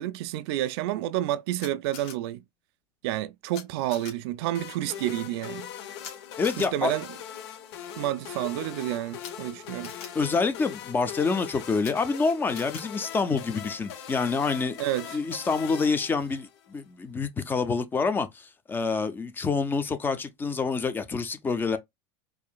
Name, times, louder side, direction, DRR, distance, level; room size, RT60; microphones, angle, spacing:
voice 1, 0.0-2.4 3.0-5.7 6.6-7.1 8.0-9.9 14.8-15.2, right 14 dB, 70° right, 0.4 m, -30 dB
Camera, 1.6-2.1 3.5-3.6 3.9-4.1 6.0-6.1 6.4-6.7 9.2-9.3 9.8-10.1 11.8-11.9 12.5-12.8, left 7 dB, 50° left, 1.8 m, -41 dB
sound 1, 4.5-16.7, left 9 dB, 75° left, 1.0 m, -41 dB
voice 2, 6.4-7.0 10.1-14.8 15.1-21.8, left 4 dB, 15° left, 0.5 m, -27 dB
4.7 x 2.7 x 2.3 m
supercardioid pair, 155°, 14 cm